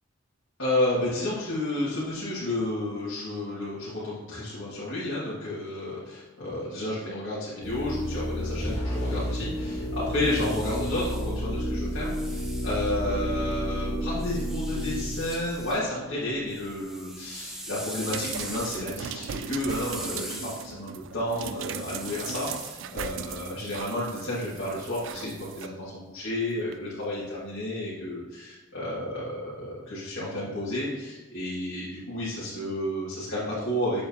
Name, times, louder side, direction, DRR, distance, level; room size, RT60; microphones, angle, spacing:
voice 1, 0.6-20.4 20.6-34.1, left 1 dB, 65° left, -10 dB, 1.9 m, -31 dB
sound 1, 7.6-16.3, equal, 30° left, 2.3 m, -31 dB
sound 2, 10.0-13.5 14.2-15.8 16.2-24.1, right 1 dB, ahead, 0.5 m, -42 dB
sound 3, 18.0-25.7 26.7-26.8, right 8 dB, 60° right, 0.3 m, -38 dB
7.4 x 6.9 x 2.8 m, 1.2 s
head